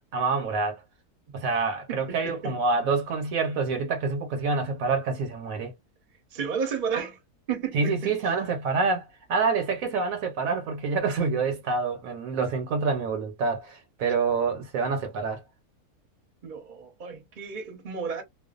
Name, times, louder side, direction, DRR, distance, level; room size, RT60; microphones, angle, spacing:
voice 1, 0.1-0.8 1.3-5.7 7.7-15.4, right 4 dB, 70° right, 1.1 m, -27 dB
voice 2, 1.9-2.6 6.3-7.2 7.5-8.2 16.4-18.2, right 6 dB, 40° right, 0.8 m, -32 dB
2.5 x 2.3 x 2.4 m
omnidirectional pair, 1.6 m